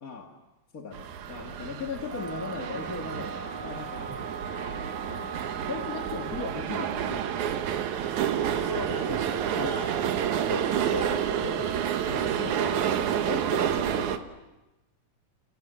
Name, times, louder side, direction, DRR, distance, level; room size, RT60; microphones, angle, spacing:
voice 1, 0.0-0.4 0.7-3.3 3.6-4.2 5.0-5.4 5.7-7.3 9.5-9.8 12.0-14.3, left 5 dB, 35° left, 2 dB, 1.8 m, -38 dB
sound 1, 0.9-14.2, right 9 dB, 70° right, 2.6 m, -29 dB
sound 2, 2.1-6.7, right 4 dB, 50° right, 1.2 m, -40 dB
voice 2, 8.3-10.0 10.3-11.8, equal, 5° right, 1 dB, 3.5 m, -36 dB
29.5 x 29.5 x 6.7 m, 1.0 s
omnidirectional pair, 3.6 m